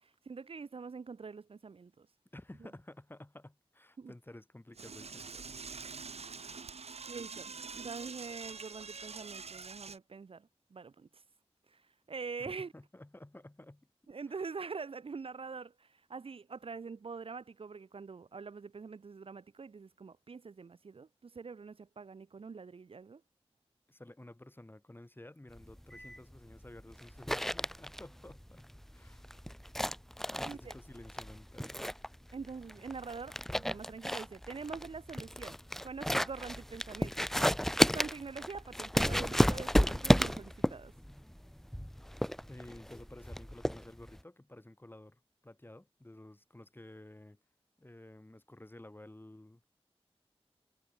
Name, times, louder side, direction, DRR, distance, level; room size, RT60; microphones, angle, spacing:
voice 1, 0.0-2.1 4.0-4.1 7.1-11.2 11.7-11.8 12.1-12.7 14.1-23.2 30.4-30.7 32.3-35.6 35.8-37.3 37.6-40.9, right 5 dB, 65° right, 0.6 m, -44 dB
voice 2, 2.3-5.6 12.4-13.9 14.3-14.4 23.9-28.7 28.9-29.3 30.3-31.8 42.0-42.2 42.5-47.4 47.8-49.6, left 1 dB, 20° left, 5.0 m, -52 dB
Door / Toilet flush, 4.7-10.0, right 5 dB, 85° right, 1.5 m, -45 dB
sound 1, 25.6-44.2, equal, 5° left, 1.0 m, -33 dB
wide cardioid pair, 90°, 10 cm